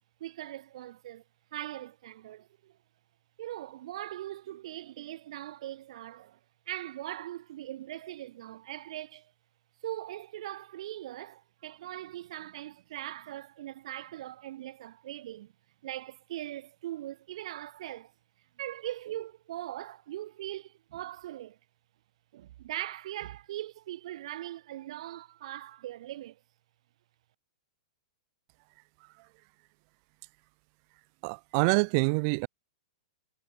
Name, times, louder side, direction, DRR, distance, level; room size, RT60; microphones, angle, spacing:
voice 1, 0.2-1.2 1.5-2.8 3.4-6.4 6.7-9.3 9.8-15.5 15.8-18.1 18.6-21.6 22.3-26.4, right 14 dB, 65° right, 7.1 m, -40 dB
voice 2, 31.2-32.5, right 35 dB, 45° right, 2.1 m, -26 dB
hypercardioid pair, 140°, 4 cm